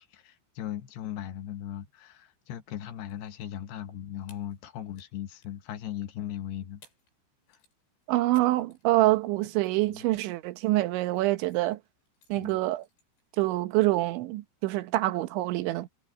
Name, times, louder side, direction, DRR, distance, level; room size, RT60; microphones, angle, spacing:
voice 1, 0.0-6.8 7.5-7.6 9.8-10.1 12.4-12.6, left 11 dB, 70° left, 2.9 m, -38 dB
sound 1, 2.9-3.3 3.6-3.7 4.2-5.1 5.4-5.7 6.5-6.6 6.8-7.2 7.4-13.5, left 3 dB, 90° left, 10.5 m, -63 dB
voice 2, 8.1-11.8 12.3-12.9 13.4-15.9, right 17 dB, 80° right, 3.4 m, -26 dB
omnidirectional pair, 5.4 m